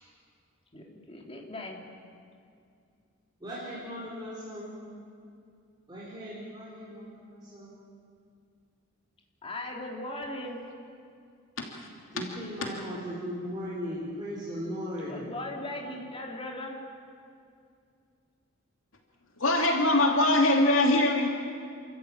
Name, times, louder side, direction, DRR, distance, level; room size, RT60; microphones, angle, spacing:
voice 1, 0.7-1.8 9.4-10.6 15.1-16.8, left 1 dB, 30° left, 0 dB, 3.3 m, -38 dB
voice 2, 3.4-4.8 5.9-7.8 12.1-15.2, equal, 20° right, -8 dB, 4.8 m, -38 dB
voice 3, 11.6-12.2 19.4-21.3, left 2 dB, 80° left, 1 dB, 2.7 m, -23 dB
29.0 x 14.0 x 8.9 m, 2.4 s
head